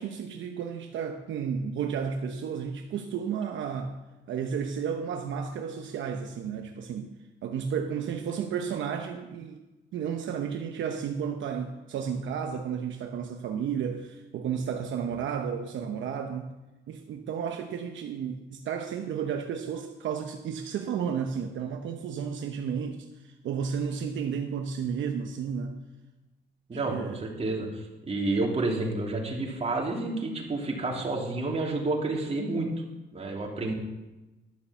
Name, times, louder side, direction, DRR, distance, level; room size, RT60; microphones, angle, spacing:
voice 1, 0.0-4.0 4.3-7.1 7.4-9.6 9.9-16.5 16.9-25.8 26.7-27.3, right 7 dB, 70° right, 4 dB, 0.9 m, -32 dB
voice 2, 26.7-32.7 33.1-33.7, right 2 dB, 30° right, -1 dB, 3.0 m, -30 dB
11.5 x 6.9 x 7.0 m, 1.1 s
cardioid pair, 90°, 20 cm